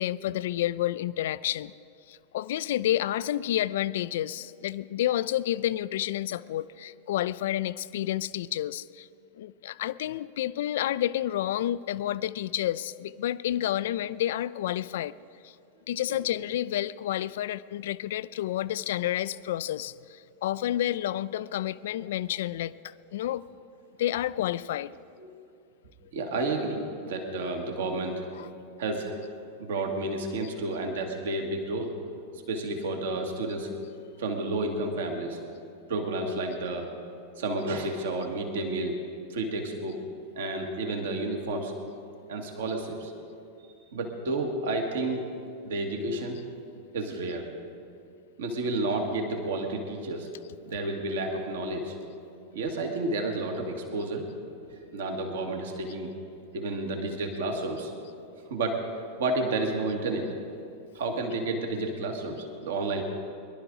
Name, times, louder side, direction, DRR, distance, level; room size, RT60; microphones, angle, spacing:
voice 1, 0.0-1.7 2.1-9.1 9.3-15.1 15.4-15.5 15.9-23.4 24.0-24.9 28.4-28.5, left 13 dB, 55° left, 18 dB, 0.3 m, -30 dB
voice 2, 26.1-28.2 28.8-29.2 29.6-31.9 32.5-33.7 34.2-35.4 35.9-36.9 37.4-39.0 39.3-40.0 40.4-41.7 42.3-43.1 43.9-45.3 45.6-46.4 46.9-47.5 48.4-50.3 50.6-52.0 52.5-54.3 54.7-56.1 56.5-57.9 58.5-58.9 59.2-60.3 60.9-63.0, right 2 dB, 60° right, 3 dB, 1.7 m, -31 dB
22.5 x 11.5 x 3.8 m, 2.5 s
figure-of-eight pair, 90°, 0 cm